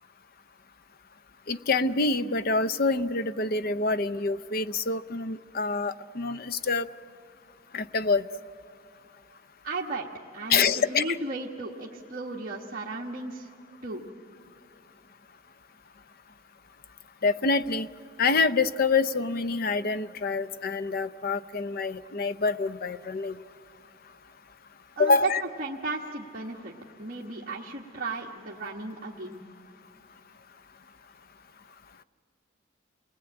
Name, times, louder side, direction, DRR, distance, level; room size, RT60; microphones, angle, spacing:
voice 1, 1.5-6.9 7.7-8.3 10.5-11.2 17.2-17.9 18.2-23.4 25.0-25.4, left 4 dB, 45° left, 13 dB, 0.6 m, -26 dB
voice 2, 9.6-10.1 10.3-13.5 13.8-14.0 25.0-25.3 25.6-26.7 27.0-29.4, right 3 dB, 40° right, -4 dB, 1.4 m, -35 dB
28.0 x 20.0 x 8.9 m, 2.3 s
head